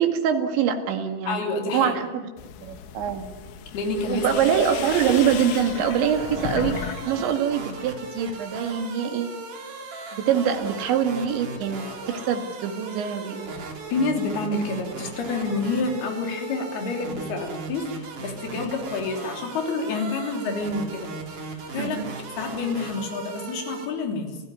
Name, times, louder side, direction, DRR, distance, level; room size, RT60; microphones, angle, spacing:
voice 1, 0.0-1.4 1.7-2.2 2.6-3.3 4.0-9.3 10.1-13.6 18.5-18.6 21.8-22.1, right 8 dB, 75° right, 6 dB, 4.3 m, -24 dB
voice 2, 1.3-1.9 3.7-4.4 13.9-22.0 22.3-24.4, left 3 dB, 60° left, 3 dB, 5.0 m, -28 dB
sound 1, 2.4-7.1 7.4-8.0, left 8 dB, 85° left, 4.0 m, -35 dB
sound 2, 4.7-23.9, right 3 dB, 45° right, 4.4 m, -37 dB
29.0 x 16.0 x 9.8 m, 1.2 s
omnidirectional pair, 5.3 m